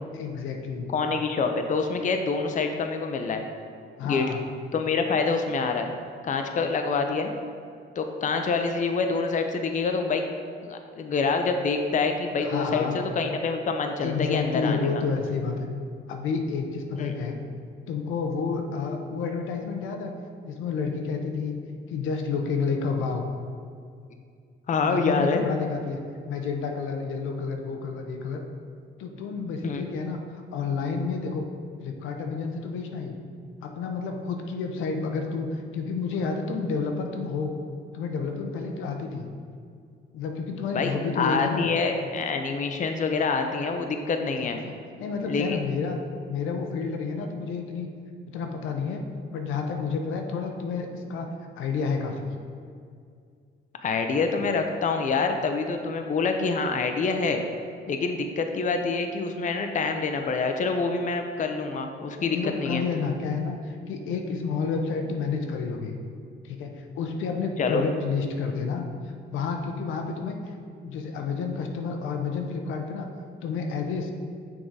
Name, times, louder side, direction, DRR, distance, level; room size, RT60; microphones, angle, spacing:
voice 1, 0.1-0.9 4.0-4.4 12.4-13.0 14.0-15.7 16.1-17.4 17.9-20.1 20.4-21.6 21.9-23.2 24.8-26.0 26.3-28.4 29.0-31.5 31.8-33.2 33.6-37.6 37.9-39.3 40.1-41.7 44.4-44.7 45.0-46.0 46.3-47.9 48.3-49.0 49.3-51.3 51.6-52.3 62.2-65.9 66.4-68.9 69.3-70.4 70.8-73.1 73.4-74.1, left 5 dB, 85° left, 3 dB, 0.7 m, -30 dB
voice 2, 0.9-3.4 4.0-4.3 4.7-5.9 6.2-7.3 8.0-10.2 10.6-15.0 17.0-17.1 24.7-25.4 29.6-29.8 40.7-44.6 45.2-45.6 53.8-57.4 57.9-62.8 67.6-67.8, left 4 dB, 40° left, 5 dB, 0.5 m, -26 dB
6.4 x 3.6 x 4.7 m, 2.3 s
cardioid pair, 90°, 20 cm